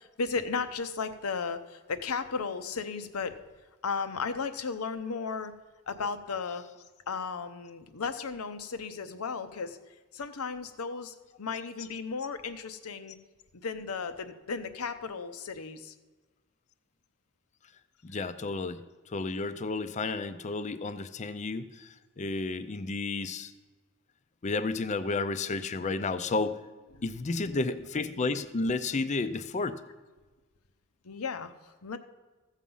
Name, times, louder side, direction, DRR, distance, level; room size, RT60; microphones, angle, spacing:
voice 1, 0.0-3.3 3.8-5.5 5.9-9.8 10.1-13.2 13.5-15.9 26.9-27.1 27.4-27.5 31.0-32.0, left 5 dB, 85° left, 11 dB, 0.8 m, -35 dB
voice 2, 18.0-18.8 19.1-23.5 24.4-26.6 27.0-29.8, left 3 dB, 35° left, 12 dB, 0.5 m, -32 dB
15.0 x 7.3 x 5.5 m, 1.3 s
head